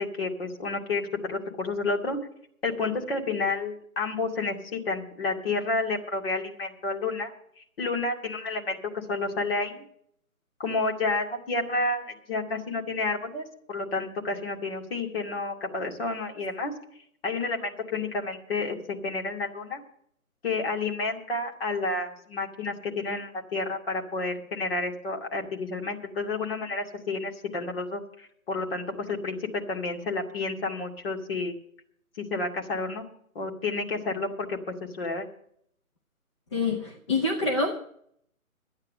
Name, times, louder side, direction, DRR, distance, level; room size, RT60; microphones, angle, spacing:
voice 1, 0.0-2.2 2.6-9.8 10.6-16.7 17.2-19.8 20.4-31.6 32.2-33.1 33.3-34.6 35.0-35.3, left 3 dB, 40° left, 1 dB, 2.3 m, -30 dB
voice 2, 36.5-37.8, left 3 dB, 20° left, 1 dB, 0.7 m, -26 dB
12.5 x 9.7 x 6.5 m, 0.67 s
figure-of-eight pair, 150°, 43 cm